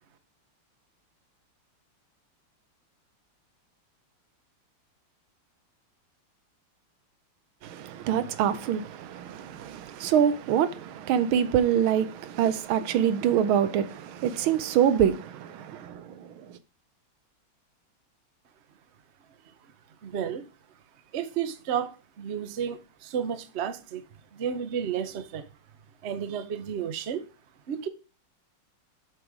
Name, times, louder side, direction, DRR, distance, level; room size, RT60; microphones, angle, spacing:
voice 1, 7.6-16.3, right 9 dB, 80° right, 1.5 m, -25 dB
voice 2, 20.0-20.5 21.1-21.9 22.2-24.0 24.3-25.4 26.0-27.3 27.7-27.9, right 8 dB, 55° right, 0.7 m, -32 dB
7.5 x 6.0 x 4.9 m
omnidirectional pair, 2.3 m